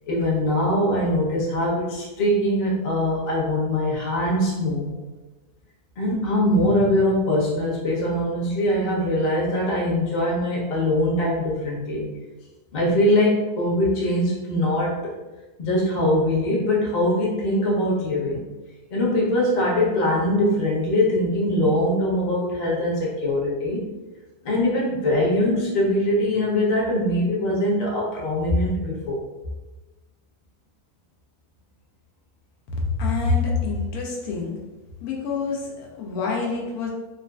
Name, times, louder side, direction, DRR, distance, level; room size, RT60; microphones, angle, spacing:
voice 1, 0.1-4.9 6.0-12.0 12.7-15.1 15.6-18.4 18.9-23.8 24.4-29.2, left 1 dB, 40° left, -4 dB, 0.7 m, -22 dB
voice 2, 32.8-34.6 35.0-36.9, left 4 dB, 80° left, -1 dB, 1.1 m, -26 dB
3.9 x 2.4 x 2.3 m, 1.2 s
omnidirectional pair, 1.6 m